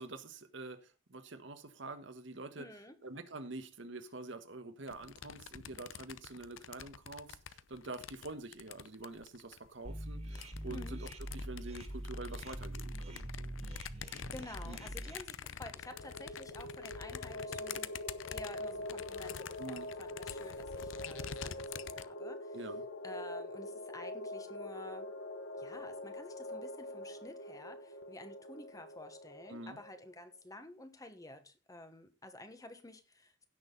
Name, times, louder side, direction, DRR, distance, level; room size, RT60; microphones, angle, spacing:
voice 1, 0.0-2.7 3.0-13.5 14.6-14.8 19.6-19.9 22.5-22.8 29.5-29.8, right 2 dB, 70° right, 1.3 m, -46 dB
voice 2, 2.6-2.9 10.6-11.0 14.3-17.9 18.3-22.6 23.0-25.1 25.6-33.5, left 1 dB, 20° left, 1.3 m, -51 dB
sound 1, 4.9-9.7 10.2-22.1, left 8 dB, 85° left, 0.6 m, -47 dB
sound 2, 9.8-15.2, right 1 dB, 35° right, 2.1 m, -43 dB
sound 3, 15.7-30.1, left 1 dB, 65° left, 1.1 m, -44 dB
16.0 x 6.4 x 4.0 m
head